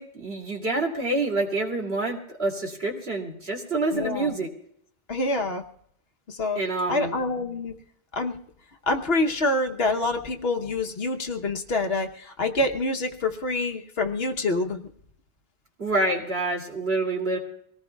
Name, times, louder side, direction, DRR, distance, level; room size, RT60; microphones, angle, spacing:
voice 1, 0.0-4.5 6.5-7.1 15.8-17.4, right 2 dB, 60° right, 0 dB, 2.9 m, -27 dB
voice 2, 3.9-4.3 5.1-5.6 6.3-6.6 6.9-7.7 8.1-8.3 8.9-14.9, left 2 dB, 60° left, 5 dB, 1.2 m, -26 dB
25.5 x 18.5 x 2.3 m, 0.70 s
omnidirectional pair, 1.2 m